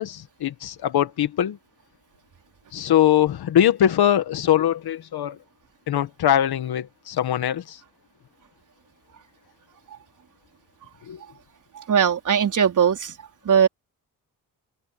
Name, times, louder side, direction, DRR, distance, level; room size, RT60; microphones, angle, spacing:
voice 1, 0.0-1.6 2.7-5.4 5.9-7.8 11.1-11.2, left 11 dB, 85° left, 1.9 m, -22 dB
voice 2, 11.8-13.1 13.4-13.7, right 8 dB, 55° right, 4.3 m, -19 dB
wide cardioid pair, 155°, 37 cm